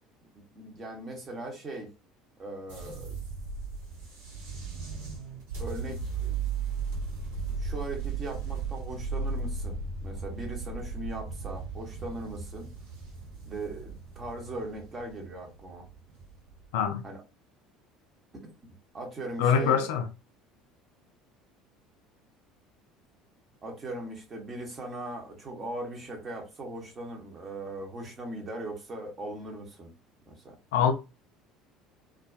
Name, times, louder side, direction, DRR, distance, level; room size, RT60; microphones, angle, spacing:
voice 1, 0.3-1.9 2.4-3.2 5.6-6.4 7.6-12.7 13.5-15.9 17.0-17.2 18.6-19.8 23.6-29.9 30.3-30.6, right 2 dB, 30° right, 0.9 m, -39 dB
sound 1, 2.7-16.9, right 4 dB, 65° right, 0.7 m, -36 dB
voice 2, 16.7-17.0 19.4-20.0 30.7-30.9, left 7 dB, 65° left, 0.3 m, -24 dB
2.3 x 2.2 x 2.4 m
figure-of-eight pair, 60°, 0 cm